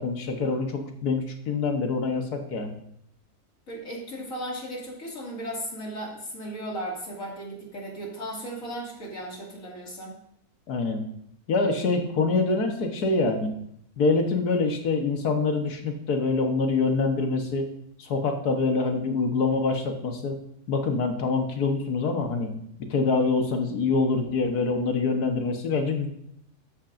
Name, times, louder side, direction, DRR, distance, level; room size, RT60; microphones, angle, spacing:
voice 1, 0.0-2.8 10.7-11.0 11.5-13.5 14.0-17.7 18.0-20.4 20.7-22.5 22.9-26.1, left 3 dB, 80° left, 4 dB, 1.8 m, -25 dB
voice 2, 3.7-10.2, right 1 dB, 60° left, -3 dB, 2.9 m, -36 dB
12.5 x 8.8 x 2.6 m, 0.72 s
omnidirectional pair, 1.6 m